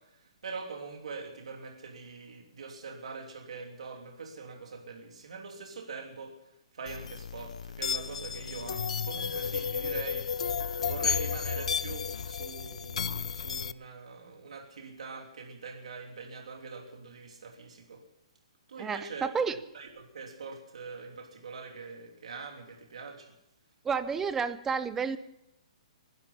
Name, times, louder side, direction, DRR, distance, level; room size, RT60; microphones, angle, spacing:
voice 1, 0.0-6.4 6.7-18.0 18.7-23.3, right 4 dB, 80° right, 3.0 m, -43 dB
sound 1, 6.9-13.7, left 6 dB, 80° left, 0.5 m, -33 dB
voice 2, 18.8-19.6 23.8-25.2, right 6 dB, 10° right, 0.5 m, -30 dB
21.5 x 12.0 x 5.6 m
hypercardioid pair, 165°, 3 cm